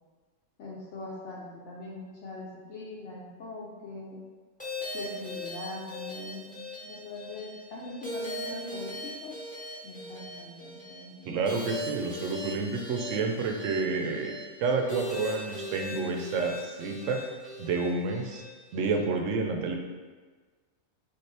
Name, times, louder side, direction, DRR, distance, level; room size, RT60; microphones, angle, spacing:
voice 1, 0.6-4.2 4.9-9.4 9.8-11.4, left 2 dB, 65° left, -6 dB, 1.0 m, -41 dB
sound 1, 4.6-19.1, left 1 dB, 5° left, 0.8 m, -40 dB
voice 2, 11.3-17.2 17.6-18.4 18.7-19.7, right 4 dB, 70° right, 3 dB, 1.0 m, -29 dB
4.2 x 3.6 x 3.3 m, 1.4 s
omnidirectional pair, 1.4 m